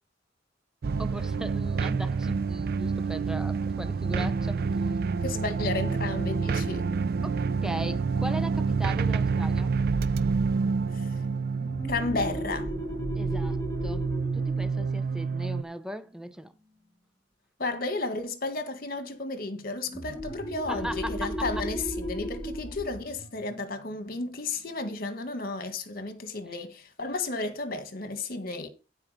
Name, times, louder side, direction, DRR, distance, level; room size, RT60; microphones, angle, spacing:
sound 1, 0.8-15.6, right 4 dB, 55° right, 0.4 m, -28 dB
voice 1, 1.0-4.7 7.2-9.7 13.2-14.1 14.3-16.5 20.7-21.7, equal, 5° right, 0.6 m, -38 dB
voice 2, 5.2-6.8 10.9-11.1 11.9-12.7 17.6-28.7, left 3 dB, 55° left, 1.7 m, -33 dB
sound 2, 11.5-16.8 19.8-25.1, equal, 15° left, 3.0 m, -37 dB
14.5 x 4.8 x 5.1 m
head